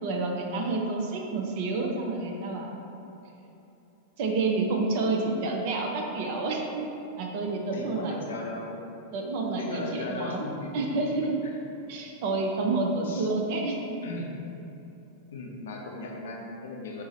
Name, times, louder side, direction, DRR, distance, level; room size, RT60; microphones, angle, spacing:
voice 1, 0.0-2.7 4.2-6.9 7.2-8.2 9.1-10.5 10.7-11.4 11.9-14.0, right 3 dB, 50° right, 1 dB, 0.4 m, -29 dB
voice 2, 7.7-8.8 9.6-11.1 11.4-11.6 13.0-13.3 14.0-14.3 14.5-14.6 15.3-17.0, left 2 dB, 60° left, -1 dB, 0.5 m, -37 dB
5.4 x 2.0 x 2.9 m, 2.9 s
figure-of-eight pair, 90°, 0 cm